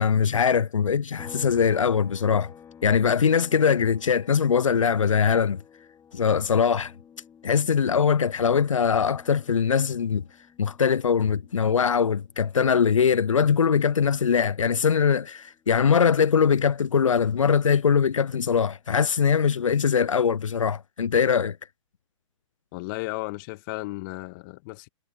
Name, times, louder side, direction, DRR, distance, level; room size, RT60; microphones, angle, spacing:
voice 1, 0.0-2.5 2.8-5.6 6.1-6.9 7.4-10.2 10.6-21.6, left 6 dB, 90° left, 0.5 m, -22 dB
sound 1, 1.2-14.7 15.1-17.3, left 8 dB, 15° left, 2.9 m, -51 dB
voice 2, 22.7-24.9, left 24 dB, 40° left, 1.6 m, -34 dB
hypercardioid pair, 120°, 16 cm